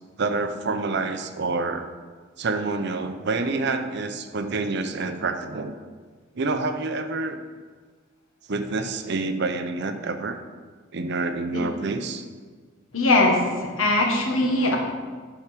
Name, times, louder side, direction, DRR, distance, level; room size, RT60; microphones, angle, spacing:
voice 1, 0.2-1.8 2.4-5.7 6.3-7.4 8.5-10.4 10.9-12.3, right 3 dB, 60° right, 8 dB, 0.7 m, -27 dB
voice 2, 12.9-14.8, left 2 dB, 90° left, 1 dB, 1.4 m, -21 dB
9.2 x 4.6 x 6.0 m, 1.5 s
head